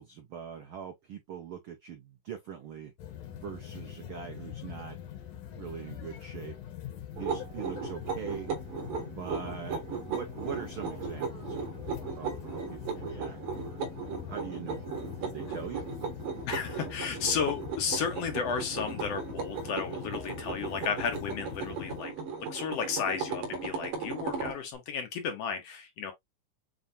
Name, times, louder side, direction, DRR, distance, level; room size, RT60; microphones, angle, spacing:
voice 1, 0.0-2.9 3.3-5.0 5.6-6.6 7.1-8.5 9.0-11.7 12.1-13.8 14.3-14.9 15.2-15.9, right 8 dB, 75° right, 1.2 m, -42 dB
sound 1, 3.0-22.0, left 10 dB, 85° left, 2.8 m, -43 dB
sound 2, 7.2-24.6, right 5 dB, 55° right, 2.0 m, -37 dB
voice 2, 16.5-22.1 22.5-26.1, left 6 dB, 65° left, 1.8 m, -33 dB
7.3 x 2.6 x 2.7 m
omnidirectional pair, 3.5 m